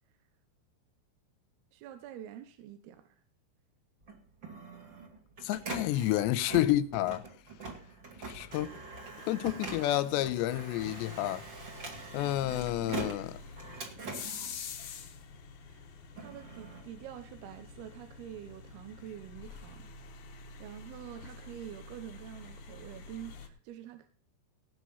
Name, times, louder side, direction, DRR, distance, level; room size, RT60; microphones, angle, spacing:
voice 1, 1.7-3.2 15.6-15.8 16.2-19.9 20.3-24.1, right 11 dB, 75° right, 2.8 m, -47 dB
Printer, 4.0-15.4 15.9-17.8, right 3 dB, 35° right, 2.5 m, -44 dB
voice 2, 5.4-7.2 8.3-8.7 9.2-11.4 12.1-13.4, left 14 dB, 85° left, 3.0 m, -30 dB
sound 1, 10.8-23.5, left 5 dB, 60° left, 2.3 m, -47 dB
18.0 x 6.1 x 5.6 m
omnidirectional pair, 5.0 m